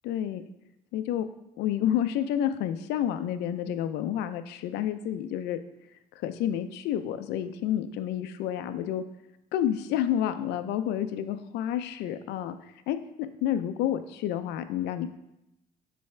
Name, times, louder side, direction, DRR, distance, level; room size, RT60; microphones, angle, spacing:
voice 1, 0.0-0.4 0.9-1.3 1.6-5.6 6.2-9.0 9.5-12.6 12.9-15.1, left 10 dB, 85° left, 10 dB, 0.5 m, -29 dB
8.7 x 3.4 x 3.3 m, 0.87 s
cardioid pair, 110°, 17 cm